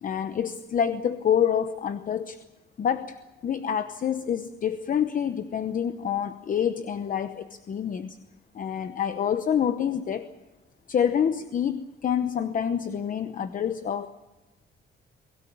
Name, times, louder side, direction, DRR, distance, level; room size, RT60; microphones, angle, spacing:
voice 1, 0.0-2.4 2.8-3.2 3.4-8.2 8.5-10.3 10.9-14.1, left 8 dB, 45° left, 11 dB, 0.9 m, -27 dB
24.0 x 17.0 x 8.6 m, 1.1 s
wide cardioid pair, 170°, 19 cm